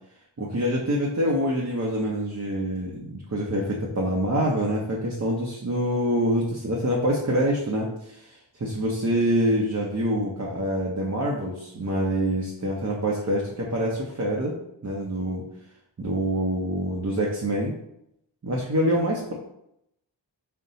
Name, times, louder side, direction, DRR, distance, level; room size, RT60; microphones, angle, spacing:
voice 1, 0.4-14.6 14.8-15.4 16.0-17.7 18.4-19.3, equal, 35° right, -3 dB, 0.7 m, -26 dB
4.0 x 2.2 x 3.9 m, 0.79 s
cardioid pair, 40°, 47 cm